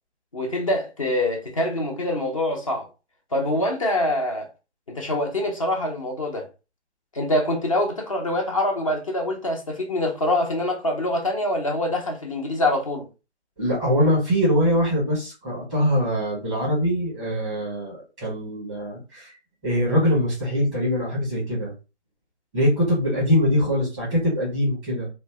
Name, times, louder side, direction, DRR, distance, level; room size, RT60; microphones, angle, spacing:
voice 1, 0.3-2.9 3.3-4.5 4.9-6.5 7.1-13.1, left 1 dB, 30° left, 0.6 m, -25 dB
voice 2, 13.6-19.3 19.6-21.7 22.5-25.1, equal, ahead, 0.8 m, -23 dB
2.6 x 2.1 x 3.4 m
figure-of-eight pair, 155°, 35 cm